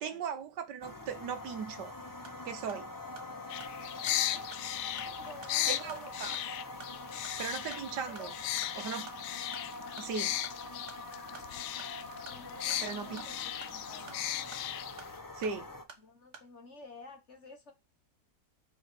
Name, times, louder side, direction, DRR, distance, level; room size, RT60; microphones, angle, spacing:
voice 1, 0.0-1.9 2.4-2.9 5.7-6.3 7.4-8.3 8.7-9.1 10.0-10.4 12.8-13.2 15.3-15.7, right 6 dB, 70° right, 1.6 m, -38 dB
sound 1, 0.8-15.8, left 2 dB, 25° left, 0.4 m, -45 dB
sound 2, 2.2-16.5, right 5 dB, 45° right, 1.5 m, -56 dB
sound 3, 3.5-15.2, left 13 dB, 85° left, 1.3 m, -37 dB
voice 2, 4.0-6.4 8.1-8.5 12.3-14.3 16.0-17.7, left 3 dB, 45° left, 1.4 m, -52 dB
5.5 x 4.8 x 6.0 m
omnidirectional pair, 1.9 m